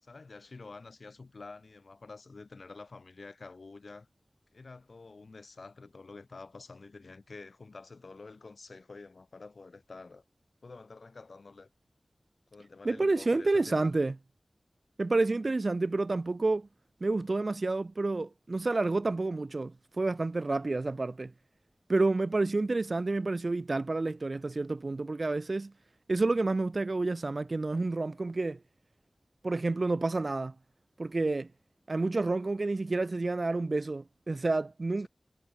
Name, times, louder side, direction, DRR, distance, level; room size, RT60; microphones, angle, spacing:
voice 1, 0.0-4.1 4.5-10.2 10.6-11.7 12.5-13.9, left 3 dB, 70° left, 4.3 m, -48 dB
voice 2, 12.8-14.1 15.0-16.7 17.0-21.3 21.9-25.7 26.1-28.6 29.4-30.5 31.0-31.5 31.9-35.1, right 3 dB, 50° right, 0.9 m, -29 dB
wide cardioid pair, 80°, 0 cm